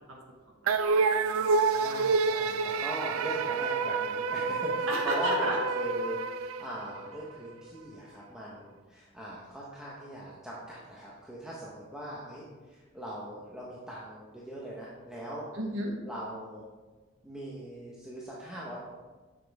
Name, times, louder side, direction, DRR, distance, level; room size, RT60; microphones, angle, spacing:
voice 1, 0.6-2.0 2.5-2.6 4.9-5.6 15.5-15.9, right 1 dB, 65° right, -1 dB, 1.4 m, -34 dB
sound 1, 0.7-7.2, right 4 dB, 85° right, 0.4 m, -28 dB
voice 2, 1.6-15.5 16.0-16.6 17.2-18.8, right 1 dB, 5° right, -7 dB, 1.0 m, -40 dB
7.7 x 7.4 x 3.5 m, 1.3 s
head